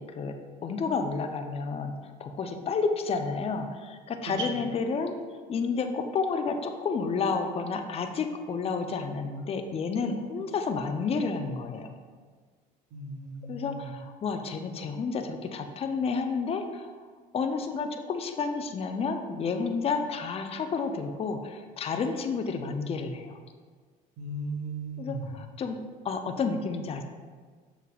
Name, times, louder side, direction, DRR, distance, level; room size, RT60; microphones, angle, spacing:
voice 1, 0.0-5.2 5.5-11.9 13.5-16.9 17.3-23.4 25.0-27.0, left 4 dB, 30° left, 6 dB, 0.4 m, -31 dB
voice 2, 12.9-13.9 24.2-25.3, right 2 dB, 70° right, 2 dB, 0.8 m, -36 dB
6.6 x 3.4 x 2.3 m, 1.5 s
supercardioid pair, 80°, 20 cm